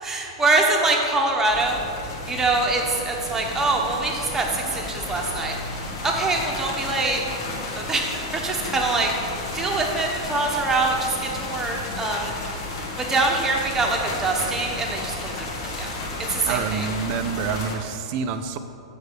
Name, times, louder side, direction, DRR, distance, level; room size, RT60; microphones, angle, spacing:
voice 1, 0.0-1.8 2.3-5.5 6.0-7.2 7.7-9.1 9.5-12.3 13.0-15.9 16.3-16.9, right 3 dB, 15° right, 0 dB, 1.1 m, -24 dB
sound 1, 1.5-17.8, left 2 dB, 55° left, 1.4 m, -32 dB
voice 2, 16.5-18.6, right 6 dB, 45° right, 9 dB, 0.5 m, -27 dB
6.7 x 4.6 x 6.7 m, 2.7 s
figure-of-eight pair, 105°, 3 cm